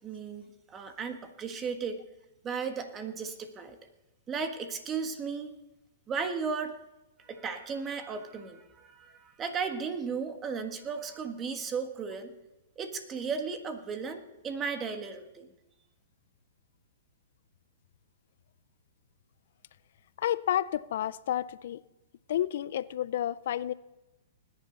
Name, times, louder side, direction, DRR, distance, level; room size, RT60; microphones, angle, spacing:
voice 1, 0.0-2.0 2.4-3.8 4.3-5.6 6.1-6.7 7.2-12.3 12.8-15.5, right 5 dB, 20° right, 1.5 m, -35 dB
voice 2, 20.2-21.8 22.3-23.7, left 11 dB, 65° left, 0.4 m, -30 dB
19.5 x 10.5 x 4.0 m
hypercardioid pair, 135°, 0 cm